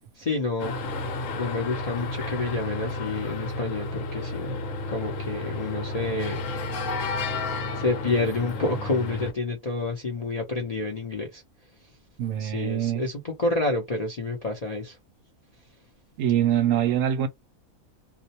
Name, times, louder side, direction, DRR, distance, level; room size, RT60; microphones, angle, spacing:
voice 1, 0.2-0.8 1.3-4.6 4.9-6.5 7.7-11.4 12.4-15.0, left 3 dB, 50° left, 0.5 m, -29 dB
sound 1, 0.6-9.3, left 2 dB, 65° left, 1.0 m, -32 dB
voice 2, 12.2-13.0 16.2-17.3, right 10 dB, 70° right, 0.9 m, -24 dB
2.4 x 2.1 x 2.8 m
omnidirectional pair, 1.5 m